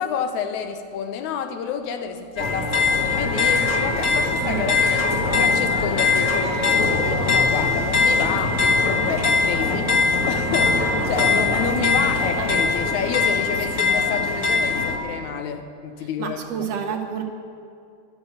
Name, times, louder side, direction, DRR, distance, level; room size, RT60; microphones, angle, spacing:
voice 1, 0.0-5.1 5.4-16.7, left 7 dB, 85° left, 7 dB, 2.3 m, -29 dB
sound 1, 2.4-15.0, left 3 dB, 35° left, 1.6 m, -21 dB
voice 2, 4.4-4.7 12.4-12.5 16.2-17.2, right 7 dB, 65° right, 3 dB, 2.3 m, -29 dB
12.0 x 11.5 x 9.2 m, 2.4 s
omnidirectional pair, 3.3 m